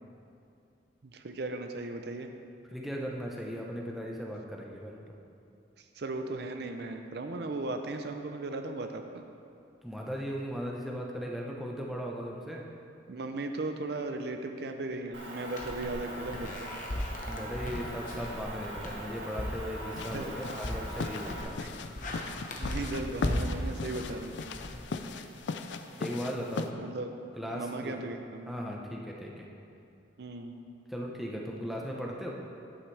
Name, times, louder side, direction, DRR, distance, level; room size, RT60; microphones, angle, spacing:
voice 1, 1.0-2.3 5.8-9.2 13.1-16.7 20.1-20.3 21.6-21.7 22.6-24.4 26.8-27.1 27.5-28.5 30.2-30.5, right 2 dB, 55° right, 5 dB, 0.5 m, -37 dB
voice 2, 2.7-5.1 9.8-12.7 17.2-21.6 26.0-26.7 27.4-28.0 28.5-29.5 30.9-32.3, equal, ahead, -2 dB, 0.7 m, -37 dB
Motor vehicle (road) / Engine, 15.1-21.4, equal, 80° right, 1.9 m, -42 dB
sound 1, 15.5-25.4, left 1 dB, 40° left, 0.9 m, -38 dB
sound 2, 20.0-26.7, left 4 dB, 70° left, 0.4 m, -38 dB
11.0 x 8.8 x 3.3 m, 2.5 s
head